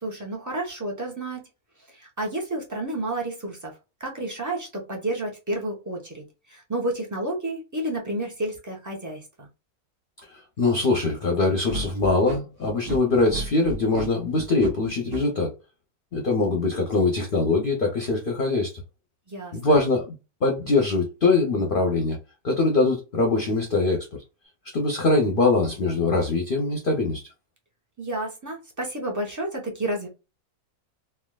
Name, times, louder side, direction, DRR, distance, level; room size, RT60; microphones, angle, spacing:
voice 1, 0.0-1.4 1.9-3.7 4.0-9.5 19.3-19.8 28.0-30.1, right 1 dB, 25° right, 0.4 m, -31 dB
voice 2, 10.6-15.5 16.1-18.7 19.5-20.1 20.4-22.2 22.4-24.1 24.7-27.2, left 3 dB, 50° left, 0.6 m, -22 dB
sound 1, 11.7-15.2, right 1 dB, 80° right, 1.4 m, -33 dB
3.4 x 2.3 x 2.2 m
omnidirectional pair, 1.6 m